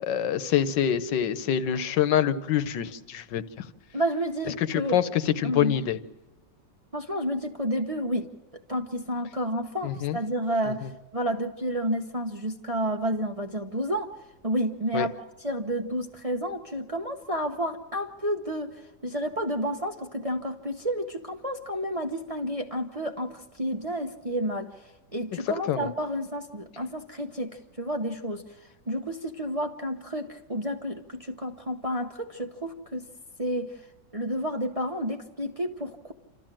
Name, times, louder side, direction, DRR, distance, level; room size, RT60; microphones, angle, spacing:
voice 1, 0.0-3.7 4.6-6.0 9.8-10.2 14.9-15.1 25.7-25.9, left 10 dB, 75° left, 13 dB, 1.5 m, -26 dB
voice 2, 3.9-5.0 5.4-5.8 6.9-8.3 8.7-14.1 14.4-15.2 15.4-28.4 28.9-33.1 33.4-33.8 34.1-36.1, equal, 25° right, 4 dB, 0.8 m, -30 dB
27.5 x 13.5 x 7.5 m, 1.1 s
omnidirectional pair, 1.9 m